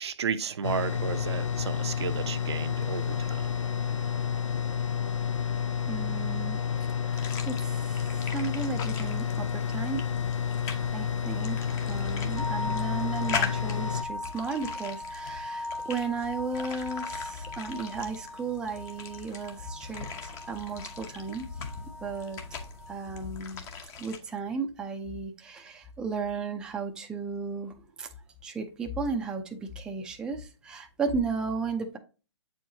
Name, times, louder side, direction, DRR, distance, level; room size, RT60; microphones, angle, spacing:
voice 1, 0.0-3.4, right 7 dB, 60° right, 0.7 m, -33 dB
sound 1, 0.6-14.0, left 7 dB, 85° left, 0.6 m, -30 dB
voice 2, 5.9-6.6 7.1-10.0 10.9-21.4 22.0-22.4 22.9-23.6 24.0-27.7 28.0-28.1 28.4-32.0, right 4 dB, 5° right, 0.5 m, -34 dB
sound 2, 7.1-24.2, left 5 dB, 20° left, 0.8 m, -40 dB
sound 3, 12.4-22.9, left 2 dB, 85° right, 1.5 m, -40 dB
7.7 x 4.6 x 2.7 m
hypercardioid pair, 140°, 15 cm